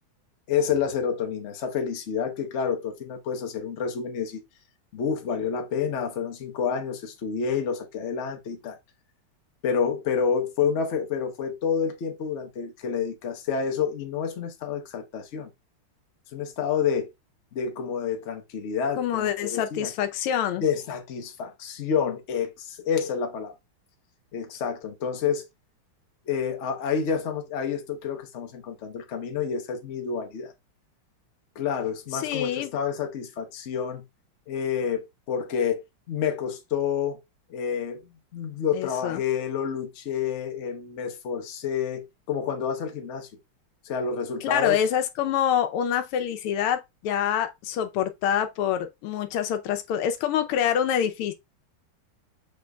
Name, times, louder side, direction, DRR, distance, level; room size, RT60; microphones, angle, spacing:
voice 1, 0.5-4.4 4.9-8.8 9.6-15.5 16.3-17.1 17.5-19.9 20.6-23.5 24.3-25.4 26.3-30.5 31.6-34.0 34.5-37.2 37.5-43.3 43.8-44.8, left 7 dB, 55° left, 0.8 m, -29 dB
voice 2, 19.0-20.6 32.1-32.7 38.7-39.2 44.4-51.3, left 9 dB, 90° left, 1.6 m, -26 dB
6.3 x 3.1 x 2.2 m
omnidirectional pair, 2.4 m